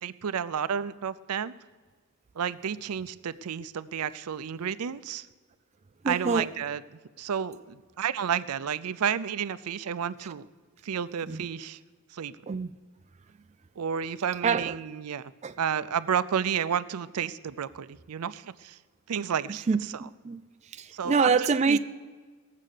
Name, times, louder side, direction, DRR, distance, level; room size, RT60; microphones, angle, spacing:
voice 1, 0.0-1.5 2.3-5.3 6.1-6.8 7.2-10.5 10.8-11.8 12.1-12.4 13.8-15.3 15.6-18.8 19.1-19.6 20.9-21.4 21.7-21.8, right 8 dB, 85° right, 0.5 m, -31 dB
voice 2, 6.0-6.5 11.3-11.5 12.5-12.7 14.4-14.7 15.4-15.5 19.7-20.4 20.7-21.8, right 5 dB, 30° right, 0.4 m, -26 dB
18.5 x 7.5 x 6.6 m
head